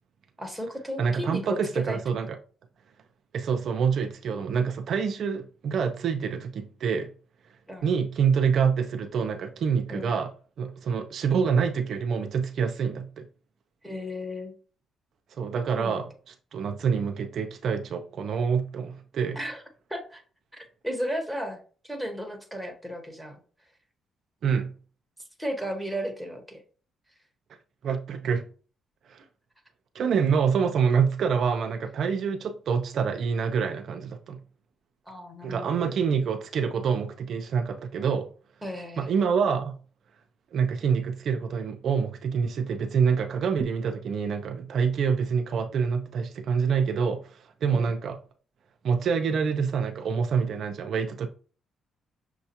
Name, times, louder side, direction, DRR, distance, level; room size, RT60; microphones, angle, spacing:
voice 1, 0.4-2.0 7.7-7.9 9.9-10.1 13.8-14.5 15.8-16.0 19.3-19.6 19.9-20.2 20.5-23.4 25.4-26.6 35.1-35.9 38.6-39.1 47.7-47.9, equal, ahead, 1.0 m, -34 dB
voice 2, 1.0-2.4 3.3-7.1 7.8-10.3 10.6-13.3 15.4-19.4 24.4-24.7 27.8-28.5 29.1-29.2 29.9-34.4 35.4-38.3 39.0-39.8 40.5-48.2 48.8-51.3, right 6 dB, 65° right, 0.4 m, -26 dB
6.2 x 2.3 x 2.8 m
cardioid pair, 90°, 0 cm